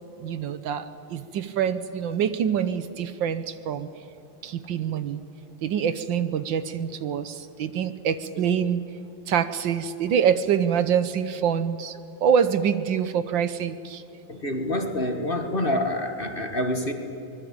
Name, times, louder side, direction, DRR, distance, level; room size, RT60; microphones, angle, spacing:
voice 1, 0.2-3.9 4.4-5.2 5.6-8.9 9.3-11.9 12.2-14.0, right 8 dB, 70° right, 12 dB, 1.5 m, -25 dB
voice 2, 14.3-16.9, left 1 dB, 30° left, 5 dB, 1.6 m, -27 dB
24.5 x 21.0 x 8.7 m, 2.8 s
omnidirectional pair, 2.2 m